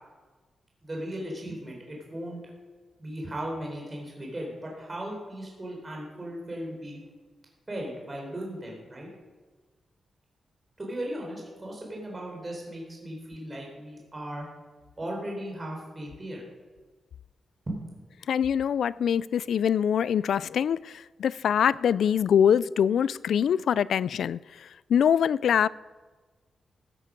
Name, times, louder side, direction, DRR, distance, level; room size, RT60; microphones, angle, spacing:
voice 1, 0.8-2.4 3.0-7.0 7.7-9.1 10.8-14.5 15.0-16.5 17.7-17.8, right 1 dB, 20° right, 4.0 m, -37 dB
voice 2, 18.3-25.7, left 8 dB, 85° left, 0.3 m, -24 dB
15.0 x 12.0 x 5.2 m
wide cardioid pair, 150°, 0 cm